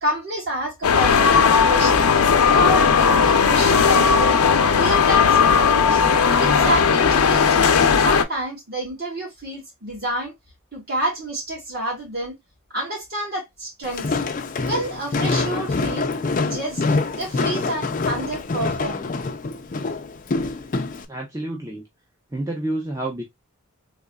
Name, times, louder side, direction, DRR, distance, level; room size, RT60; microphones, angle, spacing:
voice 1, 0.0-2.1 2.5-4.4 4.7-6.0 6.4-7.7 8.0-10.3 10.7-12.4 12.7-14.2 14.6-16.1 16.4-16.8 17.1-19.1, right 1 dB, 45° right, 2.4 m, -29 dB
sound 1, 0.8-8.2, left 6 dB, 90° left, 0.6 m, -16 dB
Walk footsteps, 13.8-21.0, left 3 dB, 35° left, 0.4 m, -25 dB
voice 2, 21.1-21.8 22.3-23.2, right 1 dB, 15° right, 0.6 m, -29 dB
3.8 x 3.1 x 2.2 m
head